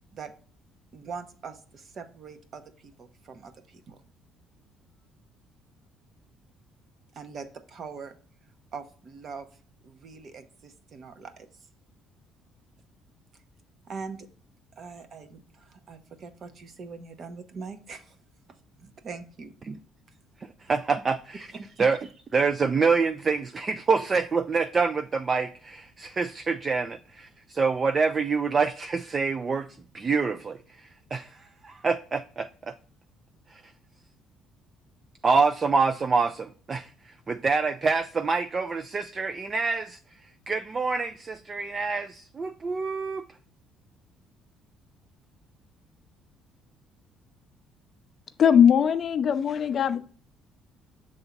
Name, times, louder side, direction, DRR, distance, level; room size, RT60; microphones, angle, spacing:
voice 1, 0.9-4.0 7.1-8.2 8.7-9.5 9.8-11.5 13.9-14.3 14.8-18.2 18.8-19.5 21.6-21.8, right 5 dB, 40° right, 0.9 m, -42 dB
voice 2, 20.6-21.5 21.8-22.0 22.3-29.7 29.9-32.7 33.5-33.6 35.2-40.0 40.5-43.3, right 4 dB, 25° right, 0.3 m, -26 dB
voice 3, 48.4-50.0, left 8 dB, 40° left, 0.5 m, -20 dB
7.0 x 3.5 x 5.2 m
cardioid pair, 140°, 0 cm